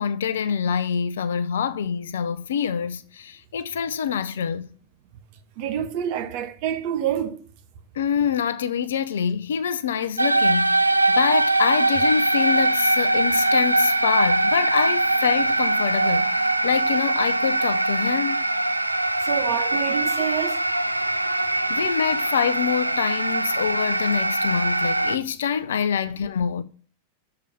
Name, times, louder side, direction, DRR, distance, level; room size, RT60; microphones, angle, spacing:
voice 1, 0.0-4.7 8.0-18.4 21.7-26.6, left 7 dB, 65° left, 0.5 m, -25 dB
voice 2, 5.6-7.4 19.2-20.6, right 9 dB, 45° right, 0.8 m, -27 dB
sound 1, 10.2-25.2, right 2 dB, 85° right, 0.3 m, -22 dB
6.8 x 4.8 x 5.4 m
figure-of-eight pair, 90°, 0 cm